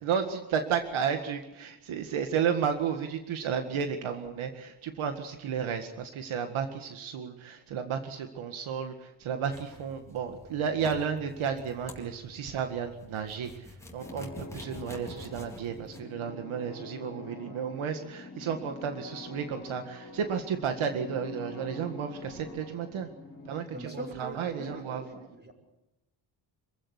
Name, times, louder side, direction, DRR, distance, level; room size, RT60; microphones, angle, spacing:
voice 1, 0.0-8.9 9.2-13.5 13.9-23.1 23.5-25.0, right 7 dB, 85° right, 6 dB, 2.0 m, -32 dB
sound 1, 9.5-16.0, left 1 dB, 5° left, 3.9 m, -48 dB
sound 2, 14.0-23.6, left 3 dB, 30° left, 3.7 m, -45 dB
voice 2, 23.7-25.5, right 1 dB, 20° right, 2 dB, 6.3 m, -42 dB
26.5 x 16.0 x 8.2 m, 0.95 s
cardioid pair, 120°, 47 cm